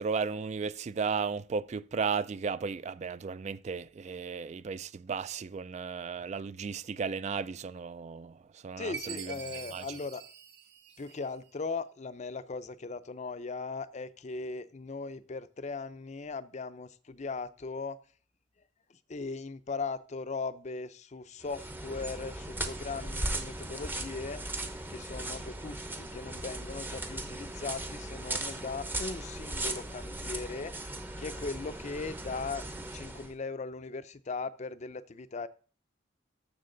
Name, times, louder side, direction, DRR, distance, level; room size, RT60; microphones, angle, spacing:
voice 1, 0.0-8.4 8.6-9.3 9.7-9.8, right 5 dB, 40° right, 0.3 m, -34 dB
voice 2, 8.8-10.2 11.0-18.0 18.9-24.4 24.9-30.7 31.2-32.6 32.9-35.5, left 4 dB, 40° left, 0.5 m, -38 dB
Chime, 8.9-11.5, right 7 dB, 65° right, 1.1 m, -44 dB
sound 1, 21.4-33.3, right 1 dB, 10° right, 0.7 m, -38 dB
13.0 x 6.4 x 3.9 m
head